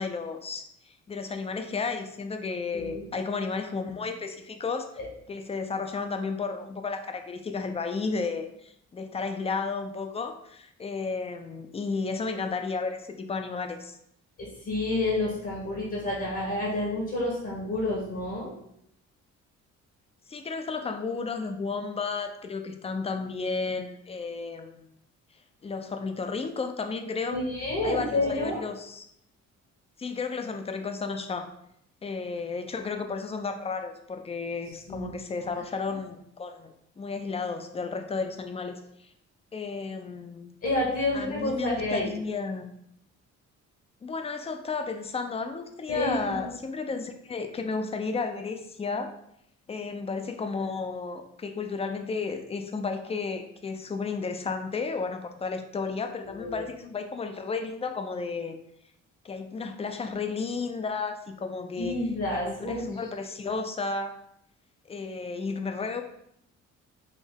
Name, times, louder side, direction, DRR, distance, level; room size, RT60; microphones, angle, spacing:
voice 1, 0.0-4.9 5.3-14.0 20.3-24.9 25.6-27.4 27.8-29.1 30.0-31.5 32.0-39.1 39.5-40.6 41.1-42.7 44.0-49.1 49.7-58.6 59.2-62.0 62.3-64.1 64.9-66.0, left 4 dB, 20° left, 6 dB, 0.3 m, -33 dB
voice 2, 14.4-18.5 27.3-28.6 34.9-35.1 40.6-42.1 45.9-46.4 56.2-56.6 61.8-62.8, left 2 dB, 50° left, -4 dB, 1.1 m, -29 dB
3.5 x 2.0 x 3.6 m, 0.74 s
cardioid pair, 90°, 30 cm